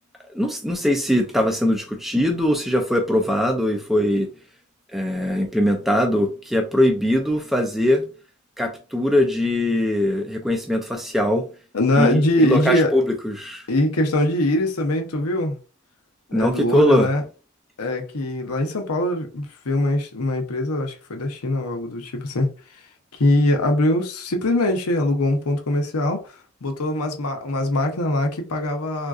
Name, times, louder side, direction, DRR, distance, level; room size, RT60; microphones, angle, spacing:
voice 1, 0.3-4.3 4.9-8.1 8.6-11.4 12.0-13.7 16.3-17.1, left 1 dB, ahead, 0.4 m, -21 dB
voice 2, 11.7-12.9 13.7-15.6 16.3-17.2 17.8-22.9 23.1-29.1, left 1 dB, 85° left, 0.8 m, -22 dB
3.7 x 2.5 x 2.4 m
head